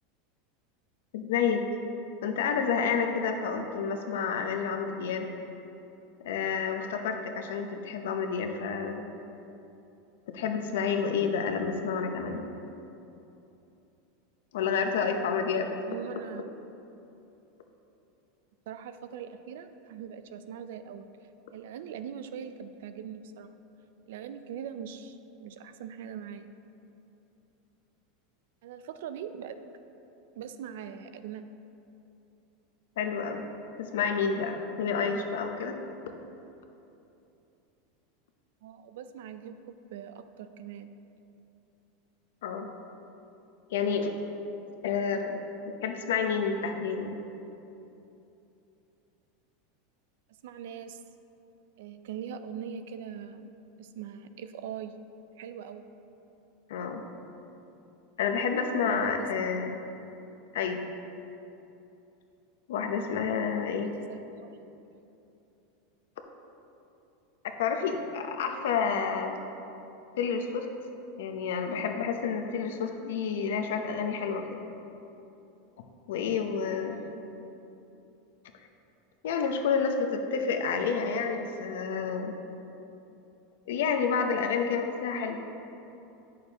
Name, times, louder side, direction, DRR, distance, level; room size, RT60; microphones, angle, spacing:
voice 1, 1.1-1.7 2.2-5.3 6.2-9.0 10.3-12.4 14.5-15.7 33.0-33.4 33.8-35.8 42.4-42.7 43.7-44.2 44.8-45.4 45.8-47.1 56.7-57.0 58.2-59.7 60.5-60.8 62.7-63.9 67.6-69.4 70.2-70.7 71.2-74.6 76.1-77.0 79.2-82.3 83.7-85.5, left 6 dB, 85° left, 5 dB, 0.7 m, -29 dB
voice 2, 15.9-16.4 18.7-21.1 21.5-23.5 24.1-26.5 28.6-29.6 30.4-31.4 38.6-40.9 50.4-51.0 51.8-53.5 53.8-54.9 55.4-55.9 58.9-59.6 63.7-64.5 76.8-77.2, right 8 dB, 75° right, 10 dB, 0.4 m, -41 dB
8.8 x 6.5 x 2.9 m, 2.9 s
supercardioid pair, 140°, 0 cm